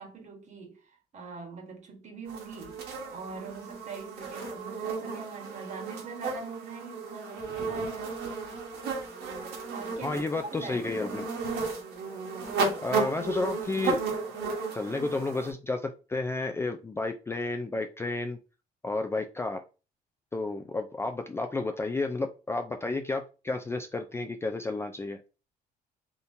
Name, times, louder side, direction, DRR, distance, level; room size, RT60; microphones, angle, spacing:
voice 1, 0.0-2.8 3.1-8.2 9.7-10.2 10.5-11.1, right 4 dB, 45° right, 1.2 m, -43 dB
sound 1, 2.3-15.5, right 4 dB, 85° right, 1.2 m, -34 dB
voice 2, 10.0-11.3 12.8-14.3 14.7-18.4 18.8-19.6 20.3-25.2, left 3 dB, 15° left, 0.3 m, -31 dB
3.5 x 2.8 x 2.6 m
cardioid pair, 110°, 17 cm